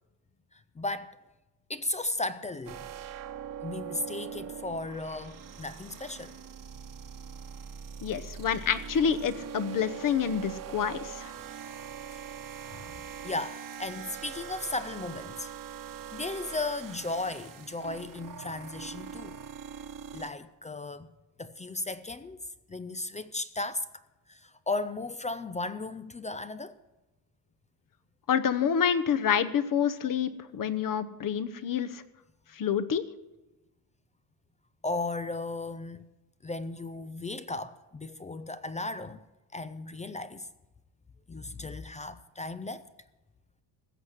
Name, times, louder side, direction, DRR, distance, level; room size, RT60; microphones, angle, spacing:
voice 1, 0.8-1.2 1.7-2.9 3.6-6.3 12.7-12.8 13.2-15.5 16.1-19.4 20.1-21.1 21.4-22.4 22.7-23.9 24.3-26.8 34.8-36.0 36.4-39.2 39.5-40.5 41.3-42.9, left 2 dB, 15° left, 0.5 m, -35 dB
sound 1, 2.7-20.3, right 7 dB, 40° right, 1.3 m, -42 dB
voice 2, 8.0-11.3 28.3-32.0 32.6-33.0, left 7 dB, 40° left, 1.0 m, -28 dB
16.0 x 6.5 x 9.8 m
cardioid pair, 110°, 48 cm